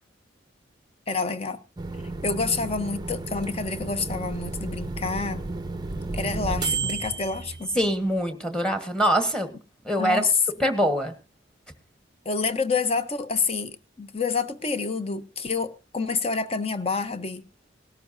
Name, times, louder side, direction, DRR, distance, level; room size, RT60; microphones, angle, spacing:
voice 1, 1.1-1.6 2.2-5.5 6.1-7.7 10.0-10.3 12.2-17.4, left 4 dB, 30° left, 0.8 m, -28 dB
sound 1, 1.8-8.2, right 3 dB, 20° right, 0.6 m, -32 dB
voice 2, 7.7-9.5 9.8-10.2 10.6-11.1, equal, 5° left, 1.4 m, -24 dB
18.5 x 13.0 x 2.7 m
head